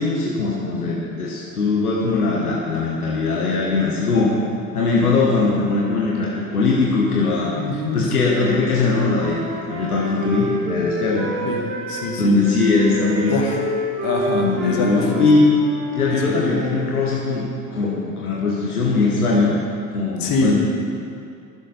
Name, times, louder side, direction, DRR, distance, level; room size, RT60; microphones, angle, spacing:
voice 1, 0.0-4.3 4.7-7.5 7.9-9.4 9.7-11.3 12.2-13.4 14.3-15.5 15.9-17.4 17.7-19.6 19.9-20.6, left 3 dB, 80° left, -4 dB, 1.4 m, -20 dB
voice 2, 7.5-8.1 11.4-11.6 11.9-12.3 13.3-13.6 14.0-14.9 16.1-16.5 20.2-20.6, left 3 dB, 50° left, -1 dB, 2.2 m, -24 dB
Wind instrument woodwind instrument, 8.3-12.1 12.4-16.9, right 1 dB, 55° right, 1.7 m, -29 dB
22.0 x 7.6 x 4.1 m, 2.4 s
figure-of-eight pair, 55°, 44 cm